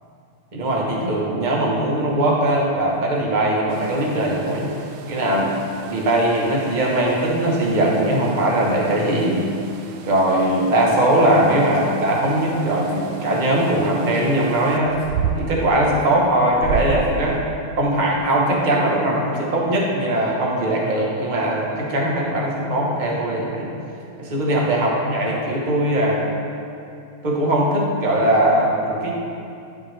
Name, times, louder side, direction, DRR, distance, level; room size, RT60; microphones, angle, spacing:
voice 1, 0.5-4.7 5.1-5.5 5.9-9.5 10.0-14.9 15.3-17.4 17.8-23.7 24.2-26.3 27.2-29.1, right 1 dB, 35° right, -3 dB, 0.7 m, -20 dB
sound 1, 3.7-17.4, right 6 dB, 75° right, 1.2 m, -34 dB
12.5 x 4.8 x 3.3 m, 2.6 s
omnidirectional pair, 2.4 m